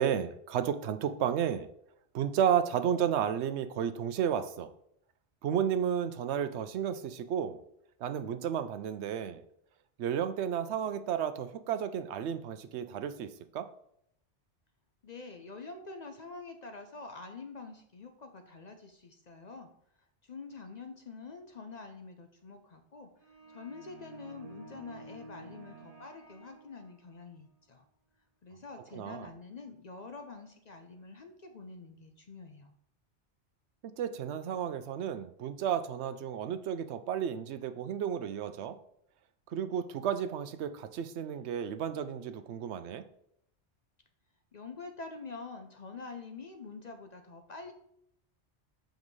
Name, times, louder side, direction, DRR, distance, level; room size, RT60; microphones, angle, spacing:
voice 1, 0.0-1.7 2.1-4.7 5.4-7.6 8.0-9.4 10.0-13.7 28.9-29.3 33.8-38.8 39.5-43.0, right 8 dB, 75° right, 11 dB, 0.8 m, -32 dB
voice 2, 15.0-19.7 20.2-27.8 28.4-32.8 44.5-47.7, left 4 dB, 50° left, 5 dB, 0.6 m, -46 dB
sound 1, 23.2-27.2, right 3 dB, 35° right, 0.8 m, -51 dB
7.4 x 5.1 x 3.1 m, 0.71 s
omnidirectional pair, 1.2 m